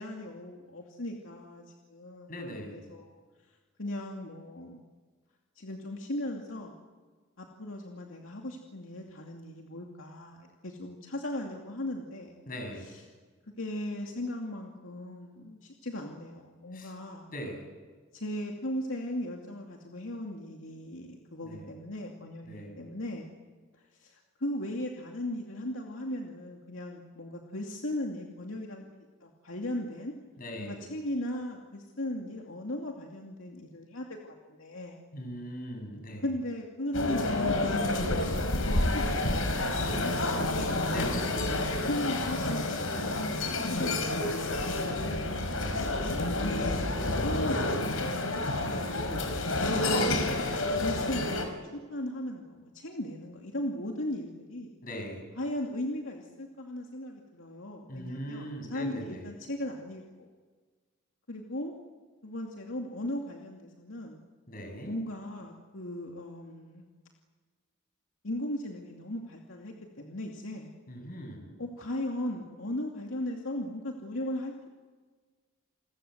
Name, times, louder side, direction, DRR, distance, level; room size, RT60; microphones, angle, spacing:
voice 1, 0.0-2.3 2.7-3.2 3.8-4.8 5.6-6.8 7.4-12.4 12.8-13.0 13.6-17.3 18.1-23.3 24.0-28.8 29.2-30.1 30.6-35.0 36.2-39.4 39.8-40.8 41.9-45.5 46.4-46.8 47.1-50.2 50.8-54.8 55.4-60.3 61.3-61.7 62.2-64.2 64.8-66.8 68.2-70.7 71.6-74.7, left 1 dB, 70° left, 1 dB, 2.6 m, -37 dB
voice 2, 2.3-2.9 12.5-12.9 16.7-16.9 17.3-17.7 21.4-21.7 22.5-22.8 30.4-30.8 35.1-36.3 39.8-40.1 40.8-41.4 54.8-55.3 57.9-59.3 64.5-64.9 70.9-71.5, equal, 45° left, 4 dB, 7.3 m, -40 dB
sound 1, 36.9-51.5, left 2 dB, 85° left, 4.9 m, -29 dB
29.5 x 21.0 x 8.1 m, 1.4 s
head